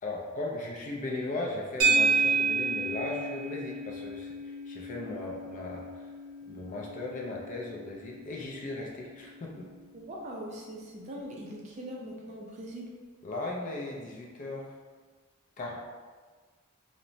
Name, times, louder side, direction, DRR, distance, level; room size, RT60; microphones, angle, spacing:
voice 1, 0.0-6.1 6.5-9.7 13.2-14.7 15.6-15.8, left 2 dB, 35° left, -2 dB, 0.4 m, -37 dB
sound 1, 1.8-10.2, right 4 dB, 85° right, 0.5 m, -32 dB
voice 2, 10.1-12.9, equal, 35° right, -3 dB, 0.4 m, -41 dB
2.9 x 2.1 x 2.6 m, 1.4 s
head